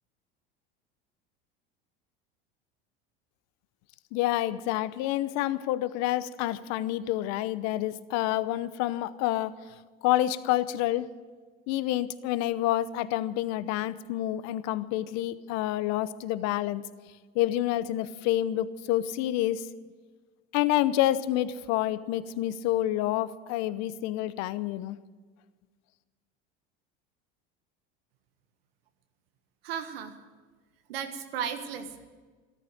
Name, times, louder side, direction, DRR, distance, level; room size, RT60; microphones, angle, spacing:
voice 1, 4.1-9.5 10.0-11.1 11.7-16.8 17.3-19.7 20.5-25.0, left 14 dB, 60° left, 15 dB, 0.9 m, -28 dB
voice 2, 29.6-30.2 30.9-32.1, right 8 dB, 85° right, 8 dB, 1.6 m, -35 dB
14.0 x 13.0 x 7.8 m, 1.4 s
hypercardioid pair, 90°, 29 cm